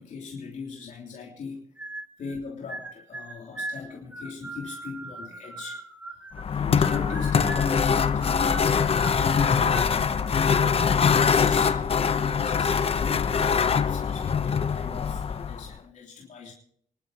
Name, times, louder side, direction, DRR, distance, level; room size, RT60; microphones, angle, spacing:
voice 1, 0.0-1.7 2.2-5.8 6.5-10.8 11.2-16.5, left 5 dB, 65° left, -2 dB, 3.4 m, -38 dB
sound 1, 1.8-2.4 2.7-6.5 6.8-7.8 8.1-9.9, right 2 dB, 10° right, 2.2 m, -39 dB
sound 2, 6.3-15.7, left 6 dB, 45° left, 0.9 m, -23 dB
27.5 x 12.0 x 3.0 m, 0.63 s
cardioid pair, 95°, 14 cm